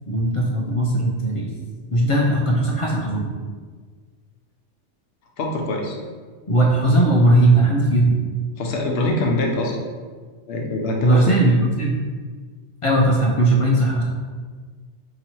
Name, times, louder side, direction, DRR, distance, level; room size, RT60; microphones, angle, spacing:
voice 1, 0.1-1.5 1.9-3.3 6.5-8.2 11.0-12.0 12.8-14.0, right 1 dB, 45° left, -2 dB, 0.4 m, -18 dB
voice 2, 5.4-6.0 8.6-9.9 10.5-11.4, left 2 dB, 65° left, 0 dB, 0.8 m, -23 dB
3.0 x 2.8 x 4.3 m, 1.5 s
omnidirectional pair, 1.2 m